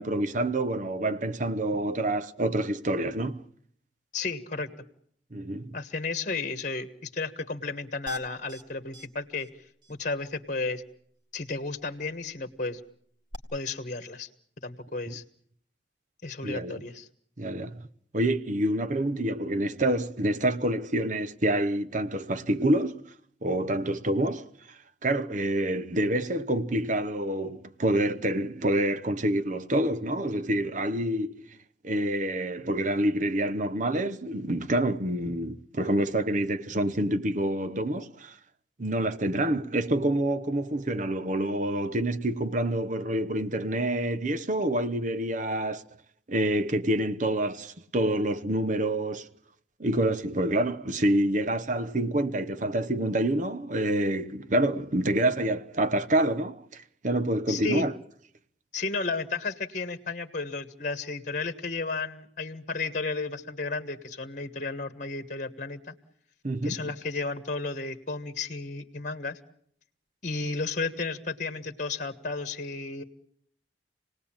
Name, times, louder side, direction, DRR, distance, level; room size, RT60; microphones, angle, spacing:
voice 1, 0.0-3.4 5.3-5.8 16.4-16.8 17.4-17.9 18.1-23.0 23.4-24.5 25.0-31.4 31.8-38.4 38.8-45.8 46.3-49.3 49.8-57.9 66.4-66.9, right 1 dB, 45° right, 1.0 m, -27 dB
voice 2, 4.1-4.7 5.7-10.8 11.3-12.8 13.5-14.3 14.6-15.2 16.2-17.1 57.5-57.9 58.7-65.9 66.6-69.4 70.2-73.0, left 3 dB, 45° left, 1.3 m, -33 dB
sound 1, 8.1-8.6 8.9-9.1 9.4-9.5 9.8-9.9 13.3-13.4, equal, 25° right, 2.2 m, -38 dB
28.0 x 19.0 x 8.7 m
head